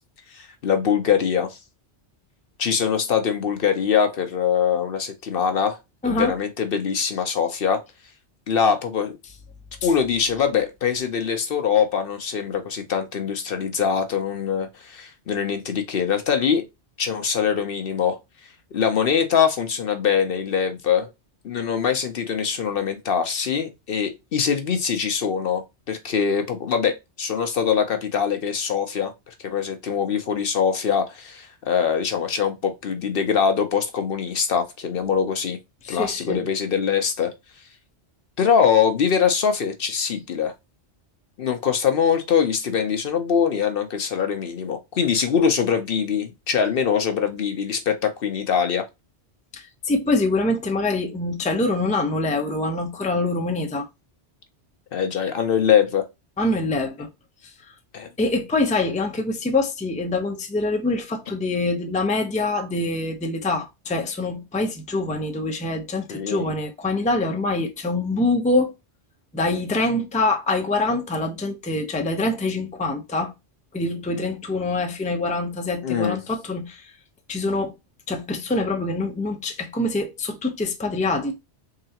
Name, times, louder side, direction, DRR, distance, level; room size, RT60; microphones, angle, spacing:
voice 1, 0.3-1.6 2.6-5.8 6.0-7.8 8.5-9.1 9.8-16.6 17.0-18.2 18.7-21.1 21.4-35.6 35.9-37.3 38.4-40.5 41.4-48.9 54.9-56.1 57.9-58.1 66.1-66.5 75.8-76.2, left 7 dB, 60° left, 0.8 m, -23 dB
voice 2, 6.0-6.4 35.8-36.5 49.5-53.9 56.4-57.1 57.4-57.5 58.2-68.7 69.3-73.3 73.7-76.8 77.3-77.7 78.1-81.4, left 2 dB, 10° left, 0.5 m, -25 dB
3.8 x 3.2 x 2.8 m
omnidirectional pair, 1.2 m